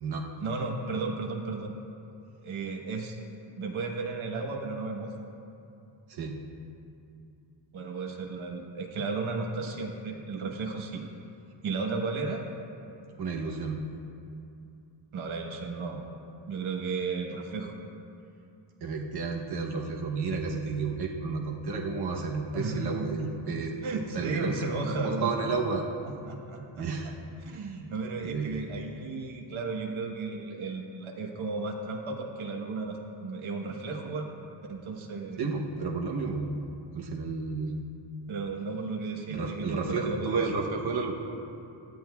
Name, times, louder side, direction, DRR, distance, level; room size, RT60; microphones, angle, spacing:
voice 1, 0.4-1.7 2.4-3.2 3.6-5.1 7.7-11.0 11.6-12.4 15.1-16.0 16.5-17.7 22.5-23.2 23.8-25.5 26.2-27.1 27.4-34.3 34.7-35.4 38.3-40.4, right 4 dB, 80° right, 2 dB, 1.3 m, -34 dB
voice 2, 13.2-13.8 18.8-25.8 26.8-27.1 27.5-27.8 28.2-28.6 35.4-36.6 36.9-37.8 39.3-41.1, right 4 dB, 55° right, 0 dB, 0.9 m, -32 dB
17.5 x 12.0 x 2.3 m, 2.6 s
wide cardioid pair, 120°, 47 cm